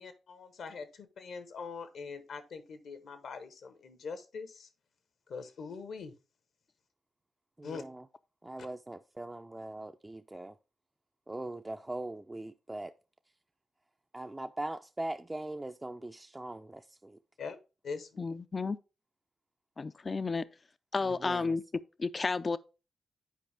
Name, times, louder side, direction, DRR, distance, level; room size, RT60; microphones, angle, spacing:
voice 1, 0.0-4.7 5.3-6.1 7.6-7.8 17.4-17.6 17.8-18.3, left 5 dB, 70° left, 1.0 m, -43 dB
voice 2, 7.6-8.1 8.4-10.6 11.3-12.9 14.1-17.2 21.0-21.5, right 2 dB, 25° right, 0.5 m, -41 dB
voice 3, 18.2-18.8 19.8-20.4 20.9-21.6 22.0-22.6, left 4 dB, 45° left, 0.4 m, -32 dB
9.2 x 4.7 x 3.4 m
hypercardioid pair, 40°, 0 cm